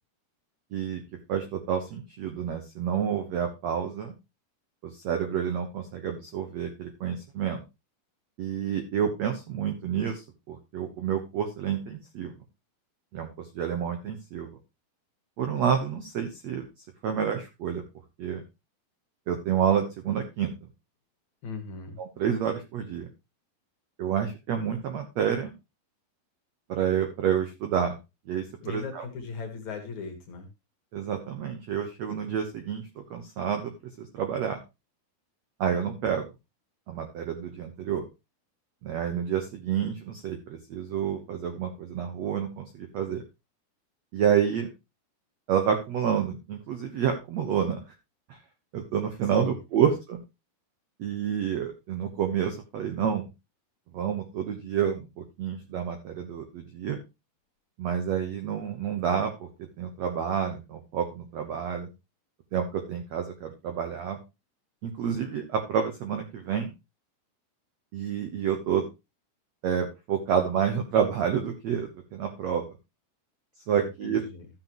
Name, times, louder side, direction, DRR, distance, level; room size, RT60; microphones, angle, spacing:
voice 1, 0.7-1.0 1.3-4.1 4.8-7.6 8.4-12.3 13.1-14.6 15.4-16.7 17.0-17.8 18.2-18.4 19.3-20.7 22.2-23.1 24.0-25.5 26.7-28.0 28.3-29.0 30.9-33.7 34.0-34.6 35.6-36.3 36.9-38.0 38.8-43.2 44.1-44.7 45.5-47.8 48.3-48.4 48.7-50.2 51.0-53.3 53.9-57.0 57.8-59.5 59.8-61.9 62.5-64.2 64.8-66.7 67.9-68.8 69.6-72.6 73.7-74.2, right 8 dB, 75° right, 6 dB, 1.6 m, -29 dB
voice 2, 21.4-22.0 28.6-30.5 49.3-49.6 73.7-74.5, left 4 dB, 55° left, 6 dB, 2.5 m, -38 dB
13.5 x 7.9 x 3.0 m, 0.25 s
omnidirectional pair, 4.7 m